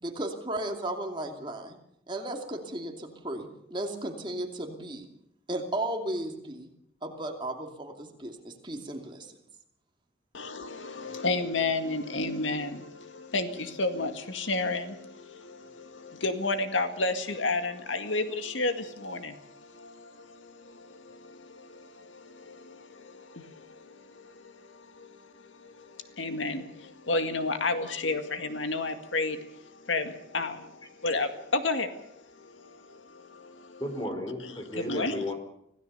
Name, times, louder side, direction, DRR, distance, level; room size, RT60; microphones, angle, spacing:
voice 1, 0.0-1.8 2.1-5.1 5.5-6.7 7.0-9.3, right 1 dB, 25° right, 3 dB, 2.6 m, -35 dB
voice 2, 10.3-33.8 34.4-35.3, left 3 dB, 90° left, 8 dB, 2.0 m, -32 dB
voice 3, 33.8-35.3, left 1 dB, 20° left, 6 dB, 3.7 m, -34 dB
25.5 x 17.0 x 6.8 m, 0.75 s
head